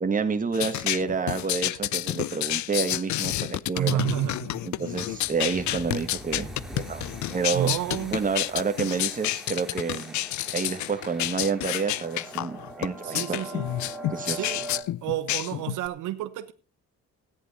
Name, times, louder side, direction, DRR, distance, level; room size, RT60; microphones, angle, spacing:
voice 1, 0.0-4.0 4.6-7.7 8.1-10.2 10.5-13.4 14.1-14.5, right 5 dB, 25° right, 1.5 m, -29 dB
sound 1, 0.5-15.9, left 15 dB, 70° left, 0.5 m, -29 dB
voice 2, 3.7-4.6 7.5-8.2 13.0-13.7 14.3-14.6 15.0-16.5, right 13 dB, 85° right, 1.0 m, -30 dB
sound 2, 4.9-14.8, right 1 dB, ahead, 2.5 m, -42 dB
14.0 x 9.5 x 4.2 m
cardioid pair, 90°, 30 cm